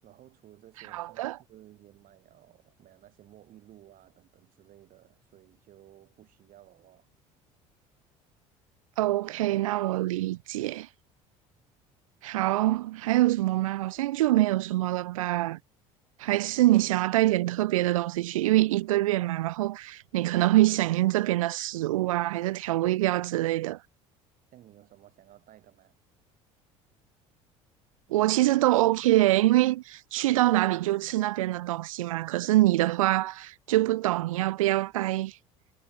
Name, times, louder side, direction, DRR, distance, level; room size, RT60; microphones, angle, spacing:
voice 1, 0.0-7.1 24.5-25.9, right 13 dB, 55° right, 7.7 m, -55 dB
voice 2, 0.9-1.4 9.0-10.9 12.2-15.6 16.2-23.8 28.1-35.3, right 16 dB, 85° right, 0.6 m, -25 dB
hypercardioid pair, 75°, 17 cm